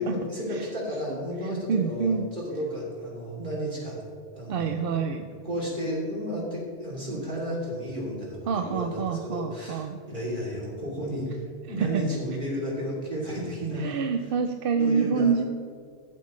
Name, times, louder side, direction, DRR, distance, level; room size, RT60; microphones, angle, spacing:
voice 1, 0.0-4.0 4.3-5.0 5.4-13.9 14.8-15.4, equal, 45° right, -4 dB, 3.1 m, -32 dB
voice 2, 1.7-2.3 4.5-5.3 8.5-10.0 11.8-12.0 13.8-15.4, right 6 dB, 60° right, 6 dB, 0.7 m, -26 dB
14.5 x 8.0 x 3.2 m, 2.2 s
omnidirectional pair, 1.2 m